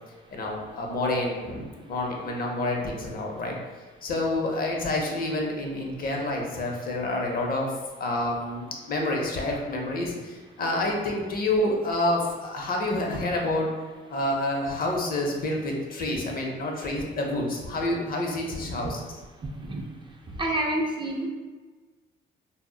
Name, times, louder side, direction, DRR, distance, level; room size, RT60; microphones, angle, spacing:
voice 1, 0.3-3.6 4.0-7.7 8.0-13.7 14.1-19.1, left 1 dB, 45° left, 0 dB, 0.6 m, -28 dB
voice 2, 20.4-21.3, right 1 dB, 25° right, 0 dB, 0.3 m, -27 dB
2.0 x 2.0 x 3.7 m, 1.3 s
cardioid pair, 90°, 20 cm